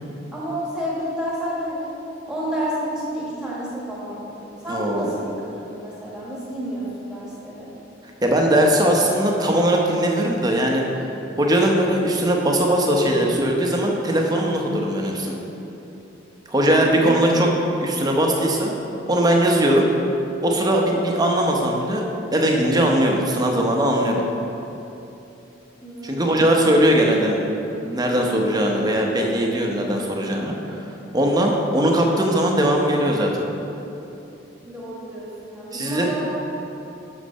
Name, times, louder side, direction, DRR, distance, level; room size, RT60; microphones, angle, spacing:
voice 1, 0.3-1.9 2.3-4.4 4.6-7.7 16.6-17.1 25.8-26.4 34.6-36.3, equal, 5° right, -7 dB, 1.5 m, -30 dB
voice 2, 4.7-5.1 8.2-10.8 11.4-15.4 16.5-17.5 17.8-18.7 19.1-19.9 20.4-22.0 22.3-24.2 26.0-27.4 27.8-30.8 31.1-33.3 35.7-36.1, right 1 dB, 20° right, 0 dB, 0.8 m, -20 dB
6.6 x 6.4 x 5.4 m, 3.0 s
head